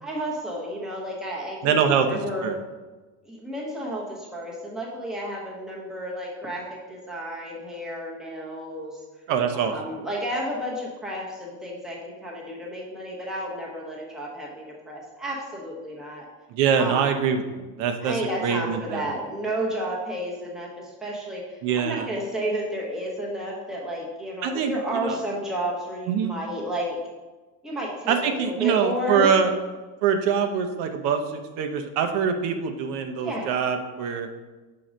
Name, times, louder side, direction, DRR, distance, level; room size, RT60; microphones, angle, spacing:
voice 1, 0.0-2.5 3.2-9.0 9.5-16.2 16.8-17.1 18.0-27.0 27.6-29.4 33.2-33.5, equal, ahead, -4 dB, 0.8 m, -32 dB
voice 2, 1.6-2.6 9.3-9.7 16.5-19.1 21.6-22.0 24.4-25.2 26.1-26.3 28.1-29.5 30.0-34.3, right 7 dB, 70° right, 6 dB, 0.8 m, -24 dB
6.0 x 3.8 x 5.1 m, 1.2 s
cardioid pair, 170°, 44 cm